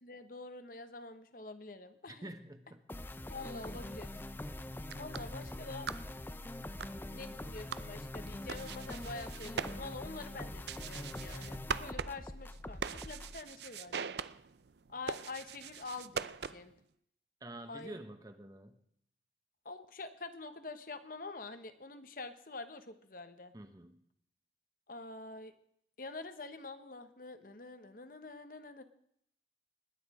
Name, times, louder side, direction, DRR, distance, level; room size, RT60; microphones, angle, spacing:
voice 1, 0.0-2.3 3.3-4.1 4.9-5.9 7.1-14.1 14.9-16.7 17.7-18.0 19.6-23.5 24.9-25.5 26.0-28.8, left 3 dB, 50° left, 10 dB, 1.1 m, -46 dB
voice 2, 2.1-2.8 17.4-18.8 23.5-24.0, right 1 dB, 20° right, 9 dB, 1.0 m, -48 dB
sound 1, 2.9-13.4, left 1 dB, 10° left, 0.4 m, -44 dB
sound 2, 4.7-16.8, right 6 dB, 70° right, 0.5 m, -43 dB
20.5 x 9.8 x 4.9 m, 0.71 s
head